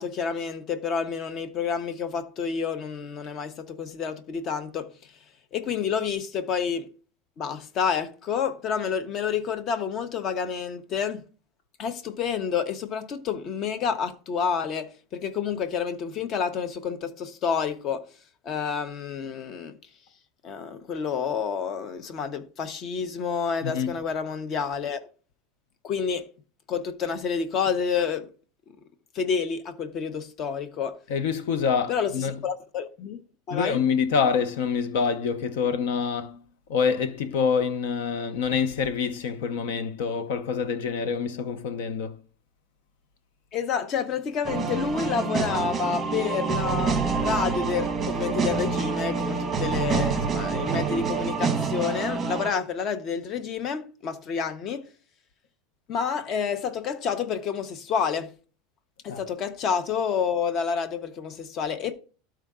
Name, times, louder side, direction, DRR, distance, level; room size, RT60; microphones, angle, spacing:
voice 1, 0.0-4.9 5.5-6.9 7.4-11.2 11.8-18.0 18.4-19.8 20.4-25.0 25.8-26.3 26.7-28.3 29.1-31.0 31.9-33.2 33.5-33.8 43.5-54.8 55.9-58.3 59.0-61.9, left 6 dB, 30° left, 0.6 m, -29 dB
voice 2, 23.6-24.0 31.1-32.3 33.5-36.4 36.7-42.2 59.1-59.2, left 6 dB, 70° left, 0.6 m, -26 dB
sound 1, 44.4-52.5, right 5 dB, 10° right, 1.1 m, -27 dB
12.5 x 4.6 x 3.6 m
supercardioid pair, 175°, 0 cm